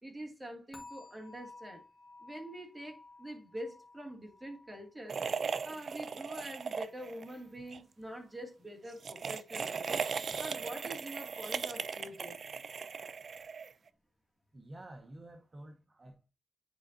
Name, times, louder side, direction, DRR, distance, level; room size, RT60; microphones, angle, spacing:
voice 1, 0.0-1.8 2.2-5.2 5.6-10.0 10.3-12.4, right 1 dB, 10° right, 2.3 m, -45 dB
sound 1, 0.7-7.8 8.1-8.5 9.0-9.1, left 3 dB, 45° left, 1.9 m, -56 dB
sound 2, 5.1-7.3 7.6-7.8 8.9-13.9, right 5 dB, 55° right, 0.5 m, -38 dB
voice 2, 14.5-16.3, right 1 dB, 30° right, 1.0 m, -50 dB
10.0 x 4.9 x 2.7 m
wide cardioid pair, 110°, 0 cm